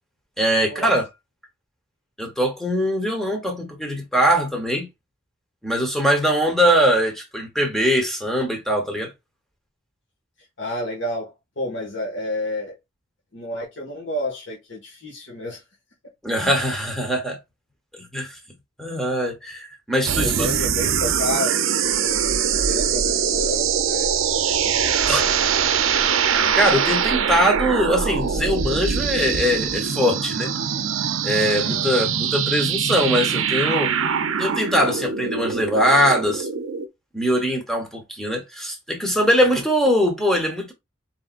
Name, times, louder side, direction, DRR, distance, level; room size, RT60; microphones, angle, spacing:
voice 1, 0.4-1.1 2.2-4.9 5.6-9.1 16.2-17.4 17.9-18.4 18.8-20.5 25.1-25.2 26.6-30.5 31.2-33.9 34.4-36.5 37.1-40.7, equal, ahead, 1.1 m, -21 dB
voice 2, 10.6-12.8 13.3-15.6 20.2-21.6 22.0-25.5 31.5-31.9, left 1 dB, 65° left, 1.7 m, -31 dB
sound 1, 20.0-36.9, right 7 dB, 80° right, 0.6 m, -23 dB
4.2 x 3.7 x 2.5 m
head